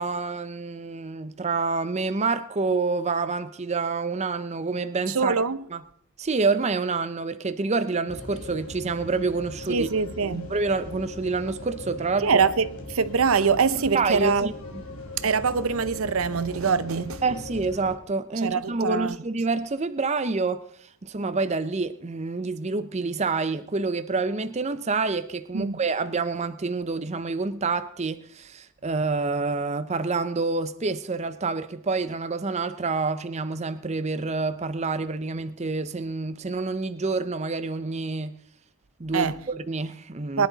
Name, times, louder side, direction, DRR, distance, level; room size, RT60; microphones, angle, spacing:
voice 1, 0.0-5.4 5.7-5.8 6.2-9.9 10.3-12.4 13.9-14.8 17.2-38.4 39.0-40.5, right 3 dB, 30° right, 0.6 m, -27 dB
voice 2, 5.1-5.6 9.7-10.5 12.2-14.5 15.2-17.2 18.4-19.2 25.5-25.8 39.1-39.4 40.4-40.5, right 5 dB, 70° right, 0.6 m, -24 dB
sound 1, 8.1-18.0, left 2 dB, 85° left, 3.1 m, -39 dB
22.0 x 10.5 x 4.0 m
head